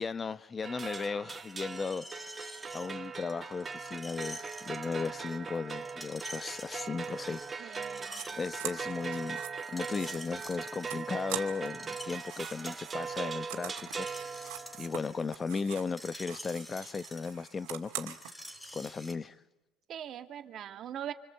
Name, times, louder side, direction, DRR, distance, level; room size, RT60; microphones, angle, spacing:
voice 1, 0.0-2.3 2.7-7.9 8.4-9.4 9.7-14.5 14.8-18.2 18.5-19.4, left 5 dB, 30° left, 1.0 m, -36 dB
sound 1, 0.6-15.1, right 5 dB, 30° right, 1.3 m, -40 dB
Screech, 1.5-19.1, equal, 10° left, 3.9 m, -49 dB
voice 2, 7.6-8.3 19.9-21.1, right 10 dB, 55° right, 2.0 m, -41 dB
sound 2, 8.0-8.3 8.6-11.8 12.1-15.9 16.2-18.3, right 14 dB, 80° right, 2.4 m, -44 dB
27.0 x 27.0 x 8.0 m
supercardioid pair, 75°, 0 cm